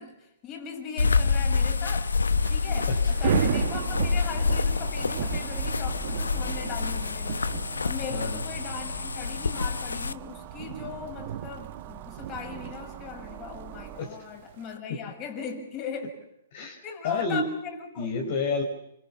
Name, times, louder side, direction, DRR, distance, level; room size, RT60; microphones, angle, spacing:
voice 1, 0.0-2.1 2.5-7.5 7.8-16.1 16.8-18.1, left 6 dB, 30° left, 6.6 m, -38 dB
sound 1, 1.0-10.1, left 4 dB, 90° left, 1.0 m, -27 dB
Thunder / Rain, 2.1-14.8, right 12 dB, 55° right, 1.2 m, -36 dB
sound 2, 3.5-14.0, right 11 dB, 35° right, 1.3 m, -44 dB
voice 2, 8.1-8.4 14.0-14.2 16.5-17.5 18.0-18.6, left 3 dB, 55° left, 4.5 m, -30 dB
27.0 x 25.5 x 7.2 m
hypercardioid pair, 125°, 0 cm